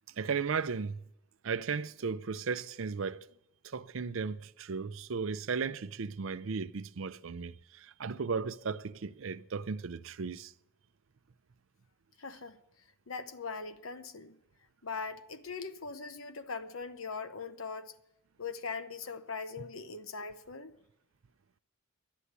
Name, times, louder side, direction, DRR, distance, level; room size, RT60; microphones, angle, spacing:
voice 1, 0.2-1.0 1.4-3.3 3.6-10.5, right 5 dB, 70° right, 0.5 m, -35 dB
voice 2, 12.2-12.6 13.1-14.3 14.8-17.9 18.4-20.7, left 4 dB, 85° left, 1.0 m, -40 dB
11.5 x 9.6 x 8.2 m
head